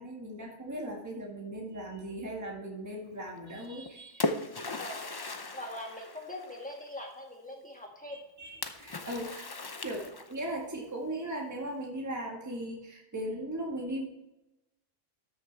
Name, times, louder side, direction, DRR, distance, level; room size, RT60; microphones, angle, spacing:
voice 1, 0.0-4.3 8.1-9.5 9.8-14.1, right 1 dB, 15° right, -1 dB, 1.7 m, -38 dB
Splash splatter, 3.6-6.8 8.6-10.5, left 2 dB, 35° left, 0.4 m, -37 dB
voice 2, 5.5-8.2, left 1 dB, 5° left, 0 dB, 1.9 m, -42 dB
13.0 x 6.7 x 3.3 m, 0.96 s
omnidirectional pair, 1.4 m